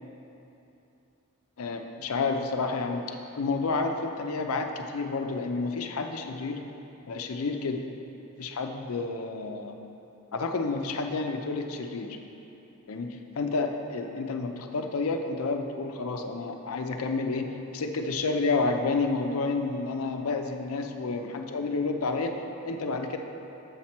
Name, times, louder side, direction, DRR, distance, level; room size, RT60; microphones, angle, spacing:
voice 1, 1.6-6.6 7.1-7.8 8.4-9.7 10.3-12.2 12.9-22.4 22.6-23.2, left 3 dB, 70° left, 4 dB, 0.5 m, -30 dB
7.2 x 5.9 x 4.3 m, 2.9 s
head